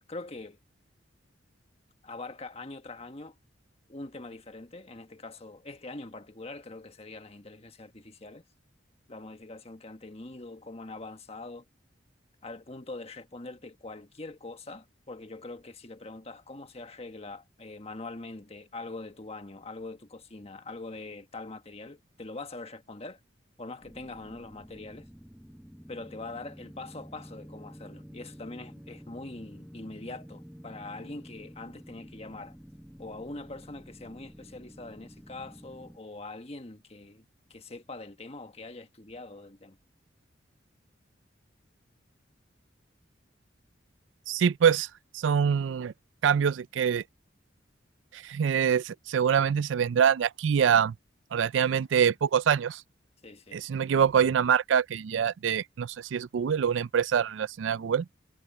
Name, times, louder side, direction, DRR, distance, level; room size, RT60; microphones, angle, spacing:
voice 1, 0.1-0.6 2.0-3.3 3.9-8.4 9.1-11.6 12.4-23.2 23.6-25.1 25.9-32.6 33.0-37.2 37.5-39.8 53.2-53.7, left 2 dB, 35° left, 1.5 m, -43 dB
sound 1, 23.8-36.0, equal, 5° right, 0.8 m, -49 dB
voice 2, 44.3-44.9 45.1-45.9 46.2-47.0 48.1-50.9 51.3-52.8 53.5-58.0, right 7 dB, 80° right, 0.4 m, -25 dB
head